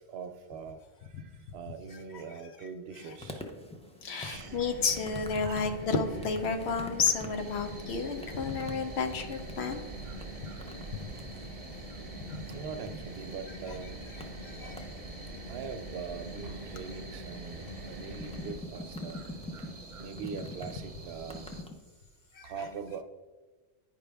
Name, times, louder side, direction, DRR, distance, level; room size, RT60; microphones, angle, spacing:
voice 1, 0.1-3.4 4.1-4.6 5.4-5.7 9.6-10.6 11.1-11.3 11.7-12.0 12.3-14.1 14.6-14.9 15.5-21.5 22.4-23.0, right 6 dB, 75° right, 8 dB, 0.9 m, -43 dB
sound 1, 2.9-21.7, left 2 dB, 10° left, 0.4 m, -47 dB
voice 2, 4.0-9.8 12.2-12.4 14.4-14.9 22.3-22.5, left 5 dB, 85° left, 7 dB, 1.0 m, -31 dB
sound 2, 4.3-18.5, right 1 dB, 40° left, 2.2 m, -44 dB
sound 3, 7.4-21.6, right 3 dB, 40° right, 0.6 m, -48 dB
9.3 x 5.1 x 3.4 m, 1.3 s
omnidirectional pair, 1.1 m